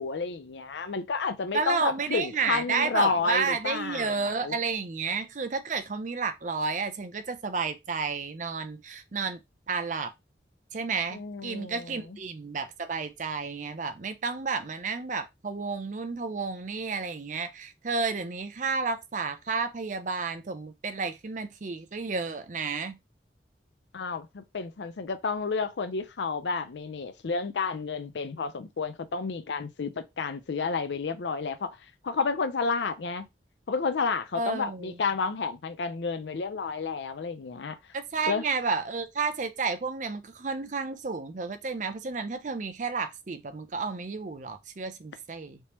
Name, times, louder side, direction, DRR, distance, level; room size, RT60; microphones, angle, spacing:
voice 1, 0.0-4.5 11.1-12.2 23.9-31.8 32.0-33.3 33.7-37.8 38.3-38.4, left 5 dB, 80° left, 0.5 m, -31 dB
voice 2, 1.5-9.4 9.7-10.1 10.7-23.0 34.3-35.0 37.9-45.6, right 4 dB, 45° right, 0.5 m, -31 dB
3.3 x 2.9 x 3.0 m
head